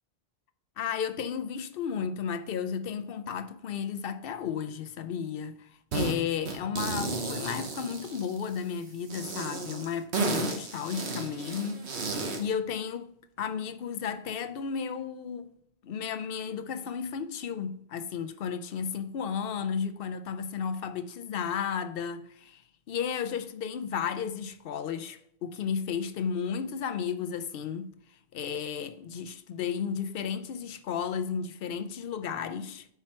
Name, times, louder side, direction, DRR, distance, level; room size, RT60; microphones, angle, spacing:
voice 1, 0.8-15.5 15.8-22.6 22.9-28.0 28.3-32.9, left 7 dB, 65° left, 0.8 m, -33 dB
sound 1, 5.9-6.2 6.5-8.6 9.1-12.5, right 3 dB, 85° right, 1.3 m, -33 dB
5.9 x 4.5 x 4.3 m
omnidirectional pair, 1.1 m